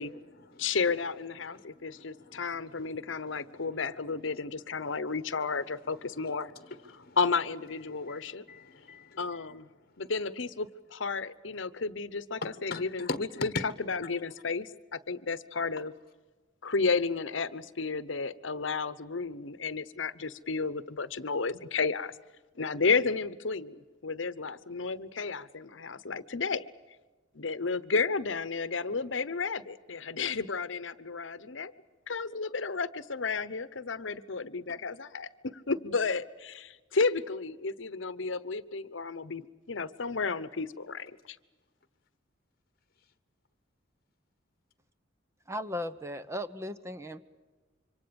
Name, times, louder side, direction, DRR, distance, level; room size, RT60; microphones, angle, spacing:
voice 1, 0.0-0.8 1.3-7.2 7.7-10.1 12.4-13.6 34.7-34.8, left 3 dB, 50° left, 1.4 m, -43 dB
voice 2, 0.6-6.5 7.2-8.4 9.2-9.7 10.0-13.1 13.4-13.5 13.9-15.9 16.6-22.1 22.6-26.6 27.3-31.7 32.1-41.4, left 4 dB, 70° left, 1.0 m, -32 dB
voice 3, 45.5-47.2, left 1 dB, 15° right, 0.9 m, -36 dB
26.5 x 25.0 x 7.1 m
head